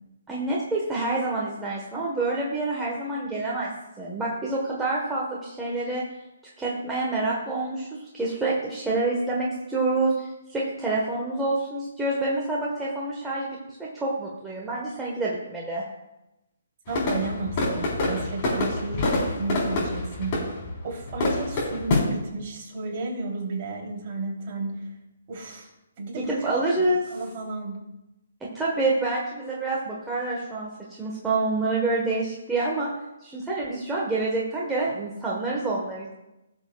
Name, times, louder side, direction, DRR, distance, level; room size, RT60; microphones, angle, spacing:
voice 1, 0.3-3.7 4.0-6.0 6.6-13.5 13.8-15.8 26.2-27.0 28.5-30.7 31.0-32.9 33.2-36.1, right 2 dB, 10° right, -5 dB, 1.3 m, -27 dB
sound 1, 16.9-22.0, left 2 dB, 35° left, 4.0 m, -27 dB
voice 2, 16.9-20.3 20.8-24.9 25.3-25.7 26.0-26.6 26.9-27.8, right 2 dB, 35° right, -3 dB, 3.2 m, -32 dB
18.5 x 7.0 x 2.4 m, 0.96 s
hypercardioid pair, 145°, 0 cm